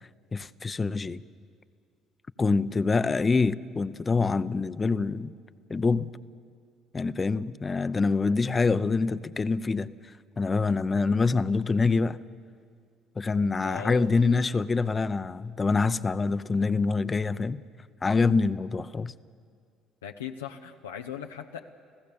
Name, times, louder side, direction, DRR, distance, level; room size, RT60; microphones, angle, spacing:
voice 1, 0.3-1.2 2.4-5.3 5.7-6.1 6.9-9.9 10.4-12.2 13.2-17.6 18.0-19.1, left 4 dB, 30° left, 0.7 m, -25 dB
voice 2, 13.6-14.1 20.0-21.7, left 8 dB, 90° left, 0.6 m, -38 dB
29.0 x 16.0 x 7.0 m
hypercardioid pair, 55°, 0 cm